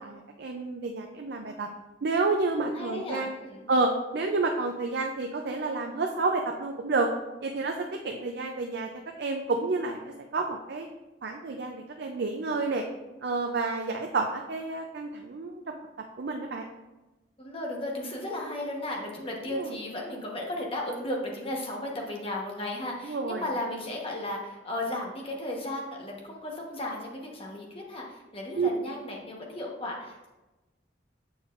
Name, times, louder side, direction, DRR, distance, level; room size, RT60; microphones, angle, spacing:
voice 1, 0.0-1.7 2.0-3.3 3.7-7.1 7.4-7.7 8.0-8.9 9.2-10.9 11.2-12.8 13.2-15.8 16.2-16.6 19.5-19.8 23.0-23.4 28.5-28.7, right 3 dB, 60° right, 3 dB, 0.5 m, -29 dB
voice 2, 2.7-3.6 17.4-30.3, left 1 dB, 30° left, -1 dB, 1.1 m, -35 dB
7.0 x 6.4 x 2.5 m, 1.1 s
head